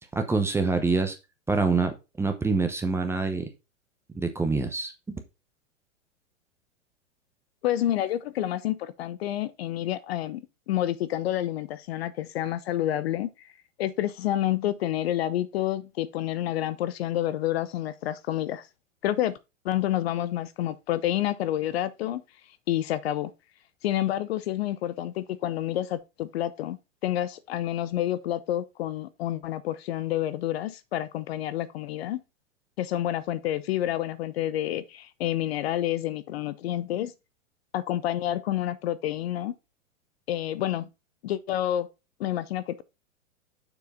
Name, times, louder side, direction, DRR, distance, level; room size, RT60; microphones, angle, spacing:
voice 1, 0.1-1.1 1.5-3.4 4.1-4.9, right 3 dB, 5° right, 0.8 m, -25 dB
voice 2, 7.6-13.5 13.8-18.7 19.0-19.4 19.6-22.2 22.7-23.3 23.8-26.8 27.0-32.2 32.8-37.1 37.7-39.5 40.3-40.9 41.2-41.9 42.2-42.8, left 13 dB, 50° left, 0.6 m, -29 dB
6.8 x 4.6 x 4.1 m
hypercardioid pair, 120°, 40 cm